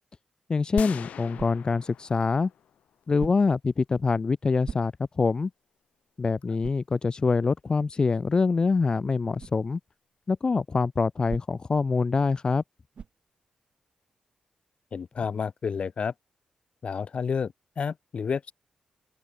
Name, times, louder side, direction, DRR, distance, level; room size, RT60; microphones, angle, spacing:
voice 1, 0.5-2.5 3.1-4.9 5.2-5.5 6.2-9.8 10.3-12.6, left 4 dB, 35° left, 0.8 m, -25 dB
sound 1, 0.8-3.0, left 9 dB, 85° left, 0.4 m, -40 dB
sound 2, 1.3-1.9 3.2-3.7 4.6-5.3 5.8-5.9 6.6-7.0 9.4-9.6 11.3-11.8 12.9-13.3, right 6 dB, 55° right, 0.7 m, -41 dB
voice 2, 14.9-16.1 16.8-18.5, left 6 dB, 55° left, 1.8 m, -30 dB
open air
cardioid pair, 95°, 2 cm